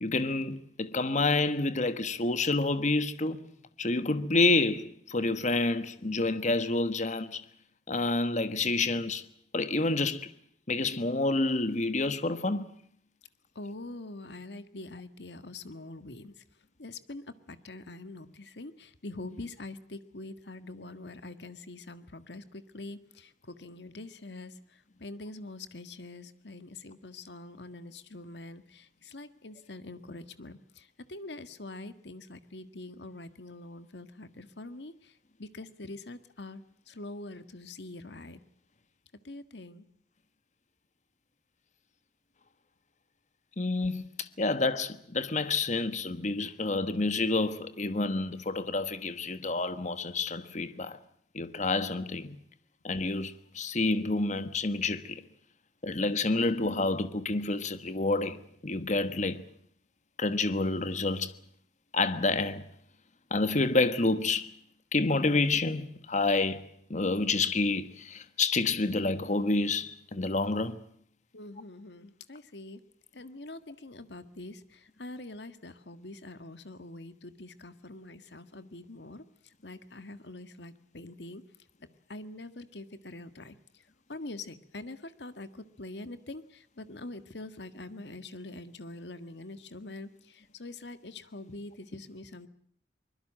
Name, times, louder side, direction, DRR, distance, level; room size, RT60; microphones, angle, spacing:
voice 1, 0.0-7.4 7.9-9.2 9.5-10.3 10.7-12.8 43.6-51.0 51.3-52.4 52.8-55.2 55.8-59.4 60.2-61.3 61.9-62.6 63.3-64.5 64.9-66.6 66.9-70.8, left 3 dB, 45° left, 1.3 m, -28 dB
voice 2, 13.6-16.4 16.8-38.4 39.2-39.9 71.3-72.8 73.1-81.4 82.1-83.8 84.1-92.5, left 2 dB, 75° left, 1.7 m, -44 dB
24.0 x 21.5 x 7.6 m
head